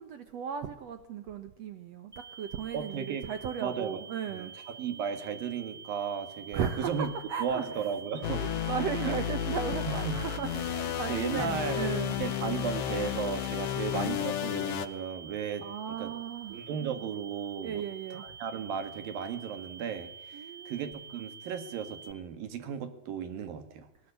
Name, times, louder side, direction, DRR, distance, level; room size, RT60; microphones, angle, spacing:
voice 1, 0.0-4.5 6.5-7.9 8.2-12.2 15.6-16.6 17.6-18.2 20.3-20.8, right 7 dB, 85° right, 10 dB, 1.4 m, -36 dB
sound 1, 2.1-22.1, right 7 dB, 25° right, 0.7 m, -48 dB
voice 2, 2.7-3.3 3.6-4.0 4.3-7.1 7.4-9.2 10.0-10.1 10.5-10.6 11.1-11.9 12.2-15.7 16.0-16.1 16.5-17.8 18.1-23.9, right 7 dB, 65° right, 10 dB, 3.3 m, -35 dB
sound 2, 8.2-14.9, left 10 dB, 85° left, 3.3 m, -32 dB
19.5 x 19.5 x 9.9 m, 0.75 s
omnidirectional pair, 4.7 m